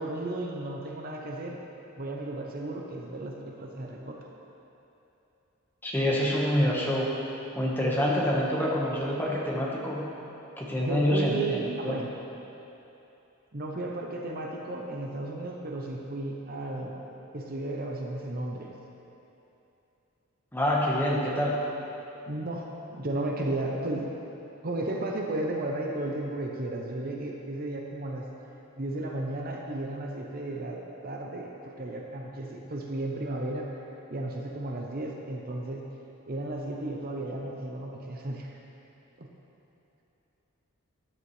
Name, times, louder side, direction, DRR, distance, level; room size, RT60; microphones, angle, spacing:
voice 1, 0.0-1.6 2.0-4.2 10.8-12.1 13.5-17.0 17.3-18.7 22.3-24.1 24.6-28.3 28.8-33.7 34.1-35.8 36.3-38.6 39.2-39.3, right 2 dB, 45° right, 0 dB, 0.8 m, -34 dB
voice 2, 5.8-7.1 7.5-10.1 10.6-11.9 20.5-21.6, equal, 10° left, -4 dB, 1.4 m, -26 dB
13.5 x 10.5 x 3.3 m, 2.9 s
head